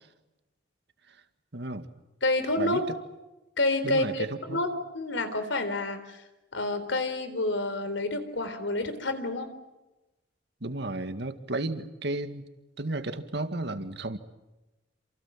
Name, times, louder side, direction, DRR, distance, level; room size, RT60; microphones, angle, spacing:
voice 1, 1.5-1.9 2.6-2.8 3.8-4.6 10.6-12.5 12.8-14.2, right 2 dB, 65° right, 9 dB, 2.1 m, -33 dB
voice 2, 2.2-2.8 3.6-6.2 6.5-9.5, left 2 dB, 80° left, 10 dB, 4.0 m, -29 dB
28.5 x 27.0 x 7.5 m, 1.0 s
head